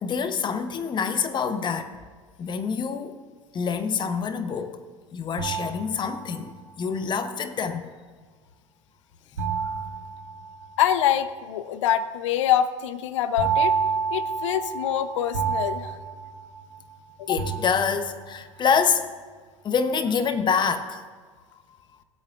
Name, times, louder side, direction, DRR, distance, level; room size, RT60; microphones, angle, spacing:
voice 1, 0.0-1.9 2.4-3.1 3.5-4.8 5.1-6.5 6.8-7.8 17.3-19.1 19.6-21.0, left 6 dB, 25° left, 9 dB, 1.0 m, -26 dB
sound 1, 5.4-6.6 9.4-11.0 13.4-16.9 17.4-18.3, right 6 dB, 80° right, 1.4 m, -29 dB
voice 2, 10.8-13.8 14.1-16.0 17.2-17.4, left 11 dB, 65° left, 13 dB, 0.8 m, -25 dB
19.0 x 8.3 x 2.5 m, 1.5 s
figure-of-eight pair, 80°, 17 cm